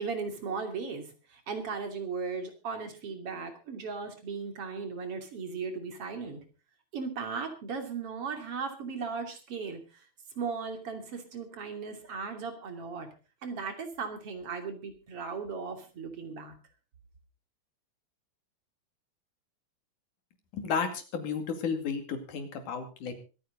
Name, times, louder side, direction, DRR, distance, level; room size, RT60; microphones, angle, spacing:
voice 1, 0.0-6.4 6.9-10.1 10.4-13.1 13.4-16.5, right 5 dB, 50° right, 6 dB, 3.6 m, -37 dB
voice 2, 20.5-23.1, left 6 dB, 90° left, 6 dB, 3.9 m, -33 dB
24.5 x 9.3 x 3.9 m, 0.34 s
omnidirectional pair, 3.5 m